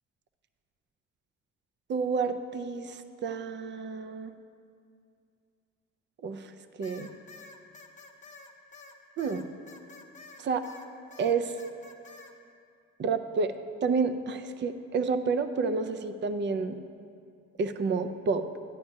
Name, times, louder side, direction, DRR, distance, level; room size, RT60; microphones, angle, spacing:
voice 1, 1.9-4.4 6.2-6.5 6.8-7.1 9.2-9.5 10.4-10.6 11.2-11.5 13.0-13.5 13.8-16.8 17.6-18.5, right 5 dB, 40° right, 10 dB, 0.4 m, -29 dB
sound 1, 6.8-10.9 11.1-12.3, left 3 dB, 25° left, 0.8 m, -49 dB
10.5 x 9.2 x 2.7 m, 2.4 s
cardioid pair, 90°, 30 cm